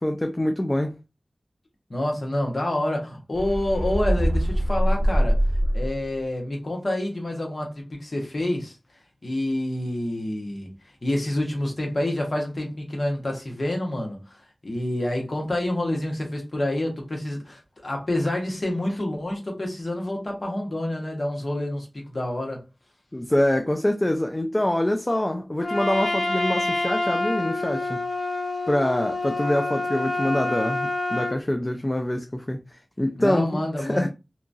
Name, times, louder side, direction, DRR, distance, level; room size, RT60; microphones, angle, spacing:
voice 1, 0.0-1.0 23.1-28.0 28.7-34.1, left 1 dB, 25° left, 0.3 m, -25 dB
voice 2, 1.9-5.4 5.7-8.8 9.2-10.7 11.0-22.6 33.2-34.1, left 1 dB, 55° left, 1.0 m, -28 dB
sound 1, 3.4-6.1, equal, 10° right, 1.0 m, -23 dB
Trumpet, 25.6-31.4, left 2 dB, 70° left, 0.6 m, -27 dB
2.8 x 2.3 x 2.6 m
wide cardioid pair, 50°, 0 cm